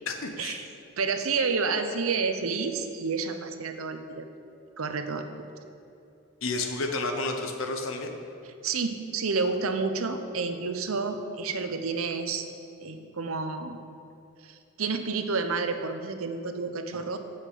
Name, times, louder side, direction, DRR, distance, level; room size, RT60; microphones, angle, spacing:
voice 1, 0.1-0.7 6.4-8.1, left 3 dB, 75° left, 4 dB, 1.0 m, -31 dB
voice 2, 1.0-4.3 4.8-5.3 8.6-12.4 12.8-13.8 14.4-17.2, right 4 dB, 85° right, 8 dB, 0.7 m, -30 dB
8.2 x 5.8 x 7.6 m, 2.8 s
head